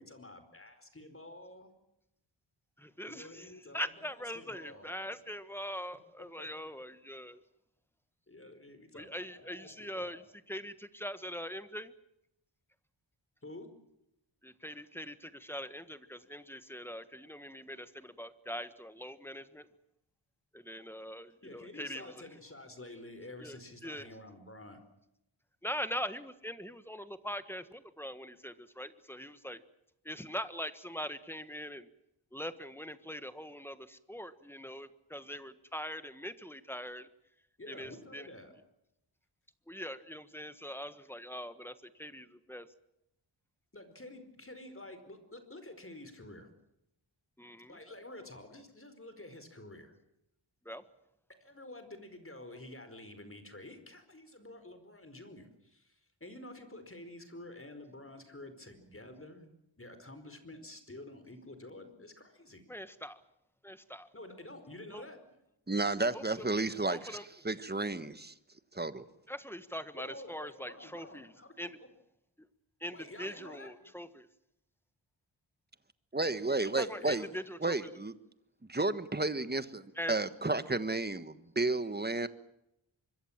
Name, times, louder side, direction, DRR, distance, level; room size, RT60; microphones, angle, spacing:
voice 1, 0.0-1.7 3.1-5.2 6.2-6.5 8.3-10.2 13.4-13.7 21.4-24.8 37.6-38.5 43.7-46.5 47.7-50.0 51.4-62.6 64.1-65.2 69.9-71.6 72.9-74.0 76.2-77.4, left 1 dB, 25° left, 9 dB, 4.8 m, -50 dB
voice 2, 2.8-7.4 8.9-10.2 10.5-11.9 14.4-19.7 20.5-22.3 23.4-24.1 25.6-29.6 30.0-31.9 32.3-37.1 37.7-38.3 39.7-42.7 47.4-47.8 50.6-50.8 62.7-63.2 63.6-64.1 64.9-65.0 66.1-66.2 66.9-67.2 69.3-71.3 71.6-71.8 72.8-74.3 76.7-77.9 79.9-80.2, equal, 5° left, 12 dB, 1.5 m, -42 dB
voice 3, 65.7-67.2 67.4-68.3 68.7-69.0 76.1-77.2 77.6-78.1 78.7-79.8 80.1-82.3, right 2 dB, 20° right, 13 dB, 1.4 m, -32 dB
25.0 x 23.0 x 7.4 m, 0.84 s
wide cardioid pair, 95°, 47 cm